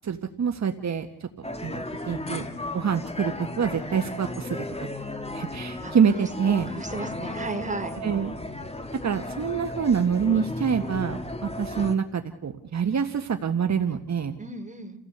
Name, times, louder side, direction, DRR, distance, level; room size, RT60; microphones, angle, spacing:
voice 1, 0.0-2.5 2.7-4.6 5.3-6.7 8.0-8.3 9.0-14.3, right 7 dB, 60° right, 7 dB, 1.6 m, -26 dB
sound 1, 1.4-11.9, left 2 dB, 20° left, 2.7 m, -35 dB
voice 2, 5.8-8.0 14.4-15.0, right 2 dB, 25° right, 6 dB, 3.7 m, -35 dB
30.0 x 17.0 x 8.1 m, 0.71 s
cardioid pair, 90°, 31 cm